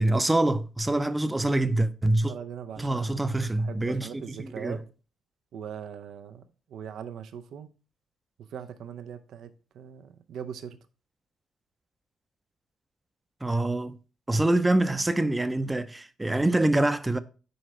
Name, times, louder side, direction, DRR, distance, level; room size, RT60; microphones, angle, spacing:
voice 1, 0.0-2.3 2.8-4.8 13.4-14.0 14.3-17.2, right 1 dB, 15° right, 0.5 m, -25 dB
voice 2, 2.3-3.2 3.6-4.9 5.5-6.4 6.7-7.7 8.5-10.8, right 8 dB, 75° right, 0.5 m, -40 dB
7.8 x 4.9 x 3.1 m
cardioid pair, 90°, 0 cm